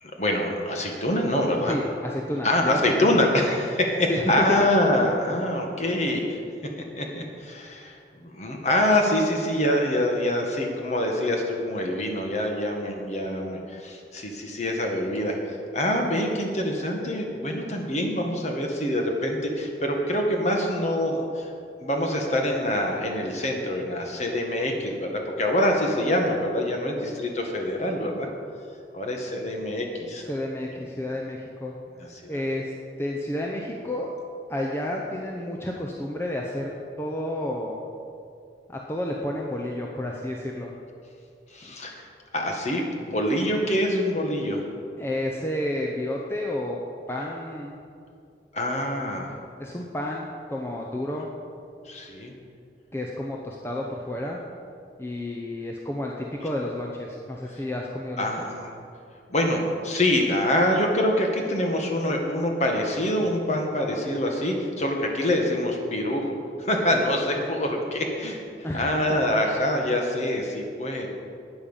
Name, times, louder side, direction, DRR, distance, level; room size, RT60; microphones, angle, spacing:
voice 1, 0.0-1.8 2.4-6.4 7.0-15.4 15.7-21.5 21.8-28.3 28.9-30.2 32.2-32.4 41.5-42.0 42.3-44.6 48.5-49.3 51.8-52.3 58.2-58.7 59.3-68.4 68.7-71.1, left 1 dB, 40° left, 1 dB, 1.6 m, -25 dB
voice 2, 1.7-3.2 4.1-4.3 30.3-31.8 32.3-32.7 33.0-34.1 34.5-36.7 37.0-37.8 38.7-40.7 45.0-46.8 47.1-47.8 49.6-51.3 52.9-54.4 55.0-58.5 68.6-68.9, left 1 dB, 15° left, -1 dB, 0.7 m, -31 dB
12.0 x 8.8 x 5.6 m, 2.3 s
head